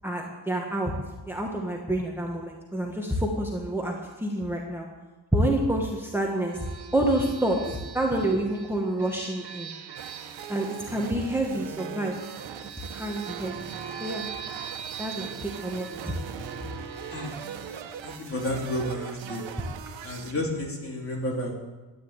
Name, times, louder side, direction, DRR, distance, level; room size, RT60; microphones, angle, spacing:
voice 1, 0.0-0.9 1.2-4.9 5.3-6.7 6.9-9.7 10.5-12.2 12.9-13.7 14.0-14.2 15.0-16.2, right 1 dB, 5° right, 0 dB, 1.7 m, -28 dB
sound 1, 6.1-19.3, right 7 dB, 65° right, 1.6 m, -43 dB
sound 2, 10.0-20.3, right 8 dB, 90° right, 1.4 m, -40 dB
voice 2, 18.0-19.4 20.0-21.6, left 1 dB, 30° left, -1 dB, 3.8 m, -31 dB
13.5 x 10.5 x 9.1 m, 1.2 s
wide cardioid pair, 130°, 44 cm